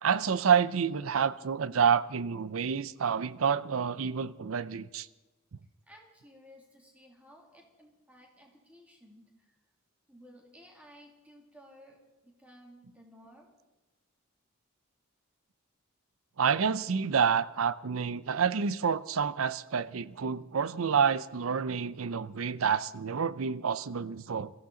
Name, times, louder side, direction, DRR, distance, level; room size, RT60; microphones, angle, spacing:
voice 1, 0.0-5.1 16.4-24.5, right 6 dB, 80° right, 0.6 m, -28 dB
voice 2, 5.9-9.6 10.1-13.5, equal, 5° right, 2.6 m, -56 dB
22.0 x 14.5 x 3.9 m
head